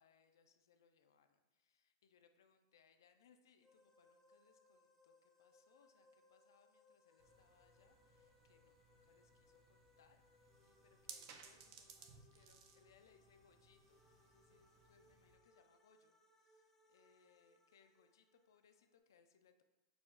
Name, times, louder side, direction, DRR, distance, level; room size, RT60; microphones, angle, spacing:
voice 1, 0.0-19.6, left 6 dB, 70° left, 7 dB, 0.3 m, -73 dB
sound 1, 3.6-19.0, left 2 dB, 10° left, 0.5 m, -73 dB
sound 2, 7.2-15.4, right 6 dB, 45° right, 0.4 m, -62 dB
6.1 x 2.0 x 2.3 m, 1.1 s
hypercardioid pair, 105°, 2 cm